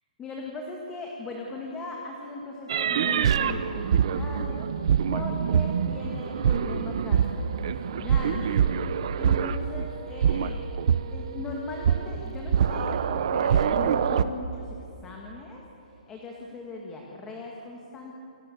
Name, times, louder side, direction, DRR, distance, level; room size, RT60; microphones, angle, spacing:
voice 1, 0.2-4.7 5.1-8.4 9.1-10.6 11.1-18.1, left 2 dB, 10° left, -1 dB, 1.9 m, -39 dB
sound 1, 2.7-9.9 10.2-11.4 11.8-14.2, right 7 dB, 40° right, 1.0 m, -25 dB
28.5 x 25.0 x 8.4 m, 2.7 s
hypercardioid pair, 175°, 5 cm